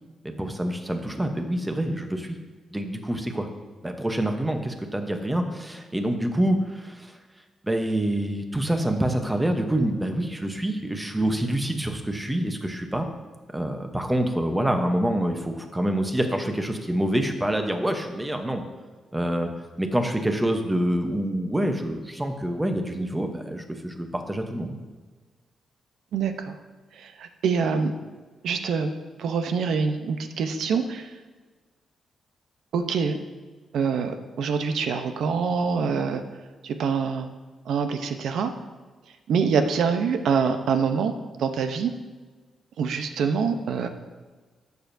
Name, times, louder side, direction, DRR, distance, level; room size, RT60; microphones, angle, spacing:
voice 1, 0.2-2.4 2.7-3.5 3.8-7.1 7.6-13.1 13.5-18.6 19.1-19.5 19.8-24.7, right 1 dB, 10° right, 5 dB, 0.9 m, -26 dB
voice 2, 26.1-26.5 26.9-27.9 28.4-28.9 29.2-31.1 32.7-33.2 33.7-36.2 36.6-37.3 37.7-38.5 39.3-41.9 42.8-43.9, right 5 dB, 80° right, 7 dB, 0.8 m, -25 dB
13.0 x 7.0 x 2.7 m, 1.4 s
wide cardioid pair, 140°, 0 cm